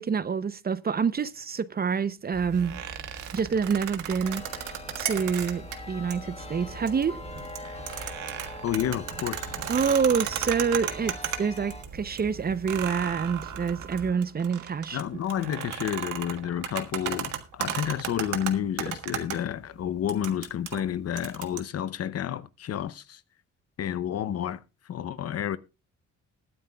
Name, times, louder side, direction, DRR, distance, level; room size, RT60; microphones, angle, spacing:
voice 1, 0.0-2.8 3.3-4.4 5.0-7.2 9.7-15.0 15.4-15.5, right 6 dB, 30° right, 0.6 m, -27 dB
sound 1, 2.3-14.1, right 2 dB, 60° right, 3.7 m, -44 dB
sound 2, 2.5-5.8 6.1-6.2 6.7-7.0 7.4-11.9 12.2-12.3 12.7-19.4 20.1-21.6, right 10 dB, 85° right, 1.5 m, -34 dB
Chime, 4.2-11.8, left 2 dB, 20° left, 1.4 m, -43 dB
voice 2, 8.6-9.6 14.9-23.2 23.8-24.6 24.9-25.6, left 10 dB, 55° left, 0.7 m, -30 dB
20.5 x 9.5 x 2.3 m
cardioid pair, 90°, 30 cm